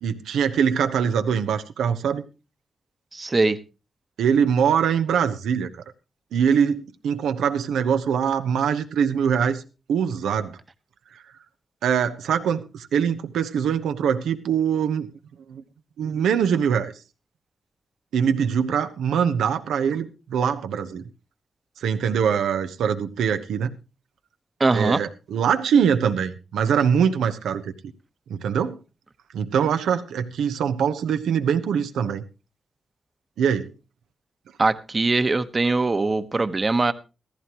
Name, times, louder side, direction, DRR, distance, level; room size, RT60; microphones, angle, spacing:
voice 1, 0.0-2.2 4.2-5.7 6.3-9.6 9.9-10.6 11.8-15.1 15.5-15.6 16.0-16.9 18.1-21.0 21.8-23.7 24.7-27.7 28.3-28.8 29.3-32.2 33.4-33.7, right 7 dB, 90° right, 1.0 m, -23 dB
voice 2, 3.1-3.6 24.6-25.0 34.6-36.9, right 3 dB, 40° right, 1.1 m, -21 dB
15.0 x 14.5 x 3.0 m
cardioid pair, 55°, 0 cm